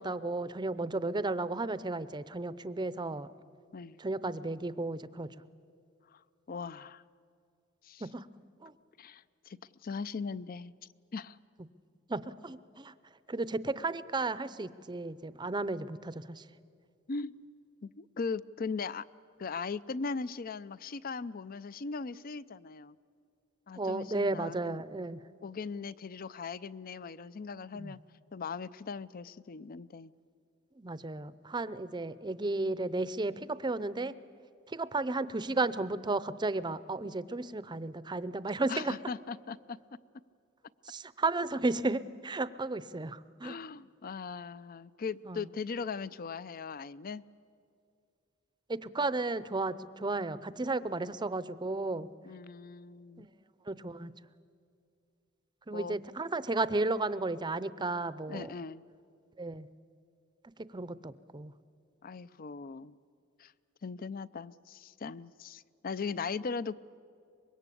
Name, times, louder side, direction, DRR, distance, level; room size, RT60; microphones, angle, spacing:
voice 1, 0.0-3.3 4.0-5.3 8.0-8.3 8.6-8.7 12.1-12.9 13.3-16.4 23.8-25.2 27.7-27.9 30.8-34.1 34.7-38.9 40.8-43.6 45.3-45.5 48.7-52.1 53.2-53.3 53.7-54.1 55.7-58.5 59.4-59.7 60.7-61.5, right 2 dB, 20° right, 16 dB, 0.6 m, -33 dB
voice 2, 6.5-7.0 7.8-8.0 9.0-10.7 11.1-11.4 17.1-17.3 17.8-19.1 19.4-23.0 23.7-24.8 25.4-28.0 28.3-30.1 38.7-39.8 43.4-47.2 52.2-53.3 55.7-56.0 58.3-58.8 62.0-62.9 63.4-63.5 63.8-66.8, left 5 dB, 45° left, 18 dB, 0.5 m, -39 dB
24.5 x 22.0 x 8.4 m, 2.4 s
head